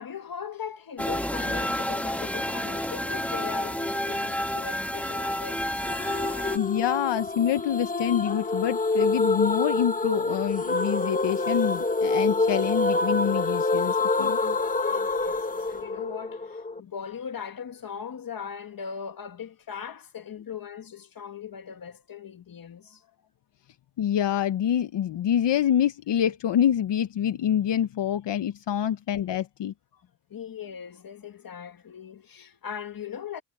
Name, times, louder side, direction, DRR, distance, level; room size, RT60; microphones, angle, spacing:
voice 1, 0.0-5.7 6.1-6.3 14.4-23.1 29.9-30.0 30.3-33.4, left 7 dB, 55° left, 1.8 m, -39 dB
sound 1, 1.0-6.6, left 1 dB, 5° left, 2.1 m, -30 dB
sound 2, 5.9-16.8, left 3 dB, 20° left, 1.3 m, -27 dB
voice 2, 6.5-14.4 24.0-29.7, left 10 dB, 90° left, 0.9 m, -26 dB
wide cardioid pair, 140°, 41 cm